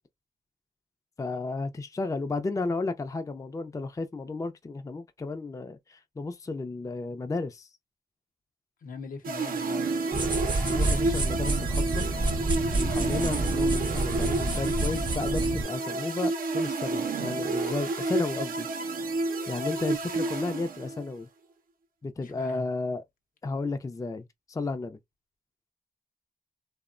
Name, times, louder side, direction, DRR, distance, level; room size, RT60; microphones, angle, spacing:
voice 1, 1.2-7.7 10.6-12.1 12.7-18.7 19.5-21.3 22.0-23.0 23.4-25.0, left 3 dB, 25° left, 0.4 m, -33 dB
voice 2, 8.8-9.8 22.2-22.7, left 5 dB, 75° left, 0.8 m, -41 dB
sound 1, 9.2-21.1, right 3 dB, 80° right, 0.6 m, -30 dB
sound 2, 10.1-15.6, right 2 dB, 35° right, 0.6 m, -28 dB
2.8 x 2.1 x 2.4 m
cardioid pair, 55°, 14 cm